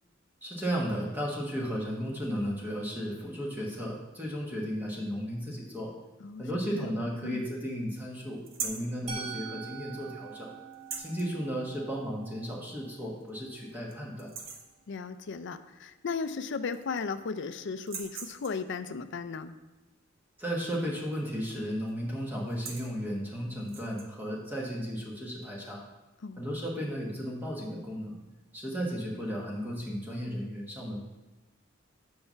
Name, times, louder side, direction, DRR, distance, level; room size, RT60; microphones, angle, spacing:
voice 1, 0.4-5.9 6.4-10.5 11.0-14.3 20.4-25.8 26.4-28.2 28.5-31.0, equal, 10° right, -3 dB, 1.2 m, -34 dB
voice 2, 6.7-7.4 14.9-19.5 26.2-26.5, left 5 dB, 65° left, 11 dB, 0.5 m, -36 dB
sound 1, 8.5-8.9 10.7-11.3 12.6-12.7 13.2-13.3 13.7-13.9 14.2-14.7 16.1-16.2 16.5-17.2 17.8-18.7 21.0-21.4 21.6-21.9 22.4-22.9 23.6-24.1, right 5 dB, 90° right, 1.0 m, -40 dB
Musical instrument, 9.1-15.0, right 6 dB, 30° right, 1.2 m, -46 dB
5.6 x 5.6 x 6.6 m, 1.1 s
head